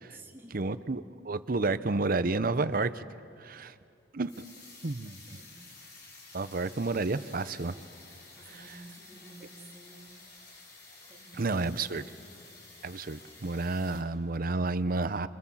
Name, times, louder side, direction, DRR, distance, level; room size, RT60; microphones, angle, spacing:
voice 1, 0.0-0.6 5.0-5.5 8.4-10.1 11.1-12.2, right 2 dB, 15° right, -2 dB, 3.2 m, -52 dB
voice 2, 0.5-3.0 3.4-3.7 4.1-4.3 4.8-5.2 6.3-7.7 11.4-12.0 12.8-15.3, right 3 dB, 55° right, 13 dB, 0.8 m, -30 dB
sound 1, 3.3-14.0, left 3 dB, 60° left, 4.2 m, -52 dB
27.0 x 25.0 x 7.3 m, 2.4 s
head